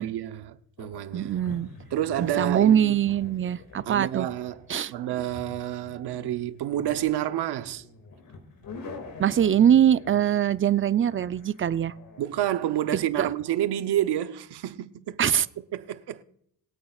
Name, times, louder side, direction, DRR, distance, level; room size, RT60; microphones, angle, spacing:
voice 1, 0.0-1.4 1.9-3.0 3.9-4.6 4.9-7.8 12.2-15.2 15.7-16.2, right 12 dB, 80° right, 0.9 m, -29 dB
sound 1, 0.8-13.5, left 3 dB, 55° left, 2.3 m, -46 dB
voice 2, 1.1-1.7 2.2-4.3 4.7-4.9 9.2-11.9 12.9-13.3 15.2-15.5, right 9 dB, 30° right, 0.5 m, -22 dB
22.5 x 8.5 x 2.4 m
cardioid pair, 80°, 40 cm